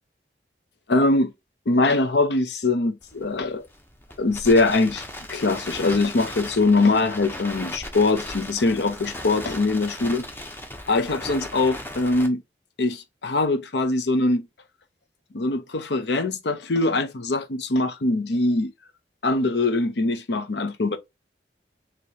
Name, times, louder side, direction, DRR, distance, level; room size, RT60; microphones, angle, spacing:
voice 1, 0.9-1.3 1.7-3.6 4.2-5.0 5.3-10.3 10.9-12.4 12.8-14.5 15.3-18.7 19.2-21.0, left 2 dB, 75° left, 0.7 m, -22 dB
Crackle, 3.0-12.3, left 1 dB, 10° left, 0.7 m, -37 dB
4.8 x 2.9 x 2.8 m
head